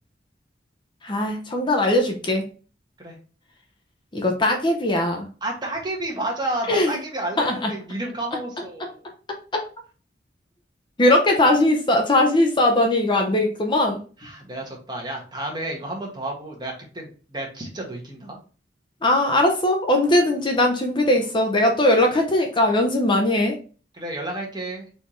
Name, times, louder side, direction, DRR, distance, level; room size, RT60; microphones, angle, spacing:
voice 1, 1.0-2.4 4.1-5.3 6.7-7.0 7.4-7.7 11.0-14.0 19.0-23.6, left 1 dB, 25° left, 2 dB, 0.7 m, -20 dB
voice 2, 5.4-9.0 14.2-18.4 23.9-24.9, right 1 dB, 25° right, -1 dB, 1.4 m, -31 dB
4.3 x 3.4 x 3.1 m, 0.37 s
head